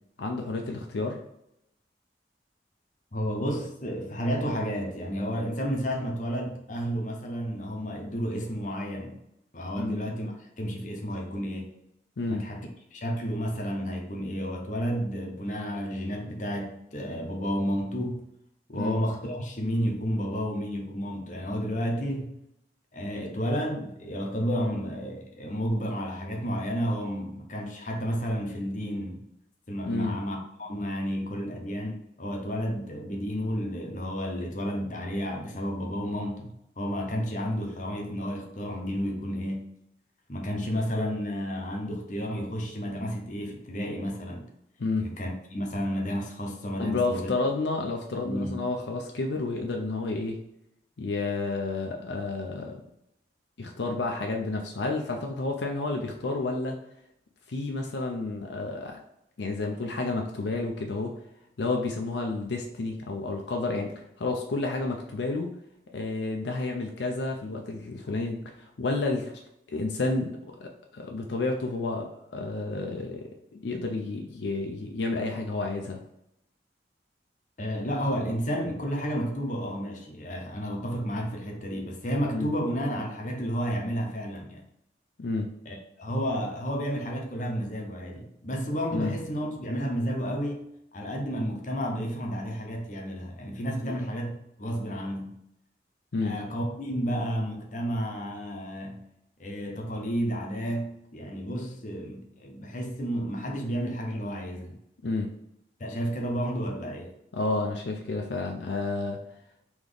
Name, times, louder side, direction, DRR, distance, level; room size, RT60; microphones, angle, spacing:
voice 1, 0.2-1.2 9.8-10.0 12.2-12.5 18.7-18.9 29.9-30.2 44.8-45.1 46.8-50.4 51.0-52.8 53.6-56.8 57.5-59.0 59.4-61.2 61.6-65.5 65.9-69.4 69.7-76.0 82.3-82.5 85.2-85.5 88.9-89.1 93.8-94.0 96.1-96.4 105.0-105.3 107.3-109.2, left 3 dB, 75° left, 0.5 m, -30 dB
voice 2, 3.1-9.2 9.5-11.7 12.3-18.2 18.7-22.4 22.9-29.2 29.7-39.7 40.3-44.5 45.0-47.3 48.2-48.6 77.6-84.6 85.7-90.6 90.9-95.3 96.2-99.0 99.4-104.8 105.8-107.1, equal, 45° left, 0.8 m, -31 dB
3.9 x 3.0 x 3.4 m
head